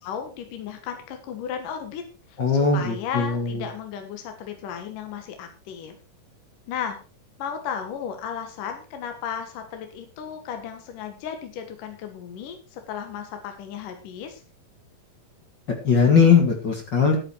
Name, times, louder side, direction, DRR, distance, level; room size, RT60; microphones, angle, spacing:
voice 1, 0.0-2.0 2.3-5.9 6.7-7.0 7.4-14.4, left 8 dB, 65° left, 6 dB, 2.9 m, -34 dB
voice 2, 2.4-3.6 15.8-17.2, left 5 dB, 40° left, 3 dB, 1.9 m, -19 dB
12.0 x 9.4 x 4.6 m, 0.34 s
omnidirectional pair, 4.2 m